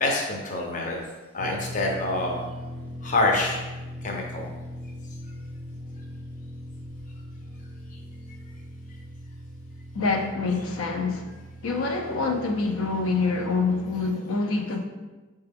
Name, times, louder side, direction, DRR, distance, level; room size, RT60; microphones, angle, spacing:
voice 1, 0.0-1.0 1.3-2.4 3.0-3.6 4.0-4.5, left 2 dB, 35° left, 0 dB, 0.6 m, -26 dB
sound 1, 1.4-14.1, equal, 30° right, 0.5 m, -40 dB
voice 2, 9.9-11.3 11.6-14.8, left 3 dB, 85° left, 3 dB, 0.5 m, -26 dB
5.7 x 2.2 x 3.4 m, 1.2 s
head